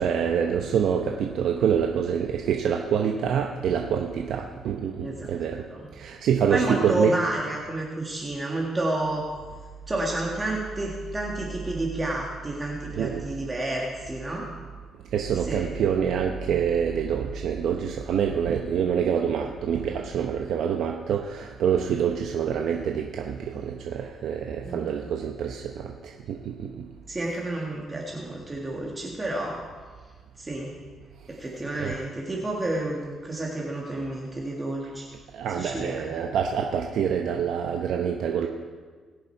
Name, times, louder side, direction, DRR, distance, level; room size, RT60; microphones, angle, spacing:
voice 1, 0.0-5.7 6.0-7.2 12.9-13.2 15.1-26.8 31.7-32.0 35.3-38.5, right 8 dB, 75° right, 2 dB, 0.8 m, -26 dB
voice 2, 5.0-5.4 5.7-5.8 6.5-9.3 9.9-14.5 15.4-15.7 24.6-24.9 27.1-29.6 30.4-30.8 31.3-35.1 35.6-36.1, right 1 dB, 25° right, -2 dB, 1.9 m, -30 dB
20.5 x 6.9 x 4.5 m, 1.5 s
cardioid pair, 90°, 0 cm